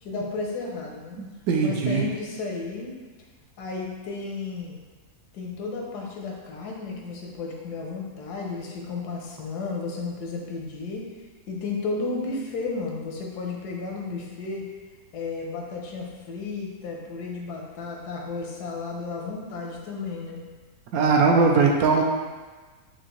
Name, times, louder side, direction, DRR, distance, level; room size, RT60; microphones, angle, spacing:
voice 1, 0.0-1.2 1.6-2.9 3.6-4.8 5.3-11.1 11.5-14.6 15.1-20.4, left 4 dB, 85° left, -1 dB, 1.3 m, -33 dB
voice 2, 1.2-2.0 20.9-22.0, right 4 dB, 75° right, 1 dB, 1.0 m, -20 dB
6.0 x 2.7 x 3.0 m, 1.3 s
omnidirectional pair, 1.7 m